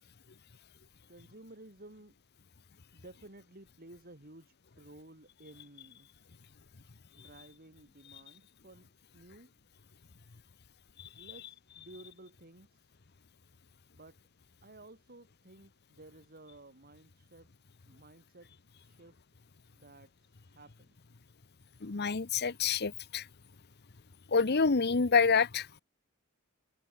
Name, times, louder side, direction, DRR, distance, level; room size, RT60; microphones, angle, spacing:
voice 1, 1.1-2.2 2.9-6.1 7.1-9.5 11.1-13.0 13.9-14.2 14.6-17.5 17.8-18.5 18.8-19.2 19.7-20.9, right 2 dB, 45° right, 6.1 m, -55 dB
voice 2, 21.8-23.3 24.3-25.7, left 5 dB, 50° left, 0.9 m, -27 dB
head